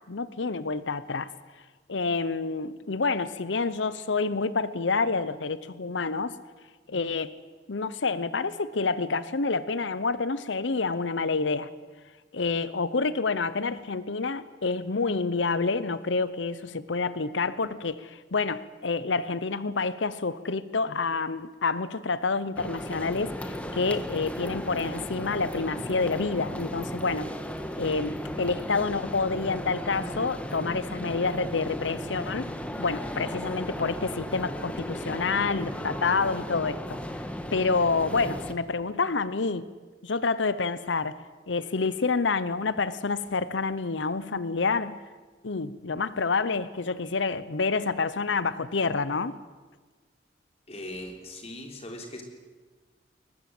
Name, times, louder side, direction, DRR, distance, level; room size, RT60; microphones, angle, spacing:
voice 1, 0.1-1.3 1.9-6.3 6.9-7.4 7.7-11.7 12.3-27.3 27.8-32.5 32.8-37.0 37.5-39.7 40.0-41.2 41.5-45.0 45.4-49.4, left 4 dB, 80° left, 15 dB, 0.8 m, -28 dB
sound 1, 22.6-38.5, equal, 5° left, 1.4 m, -35 dB
voice 2, 50.7-52.2, left 1 dB, 35° left, 3 dB, 3.7 m, -40 dB
22.0 x 19.5 x 7.8 m, 1.4 s
head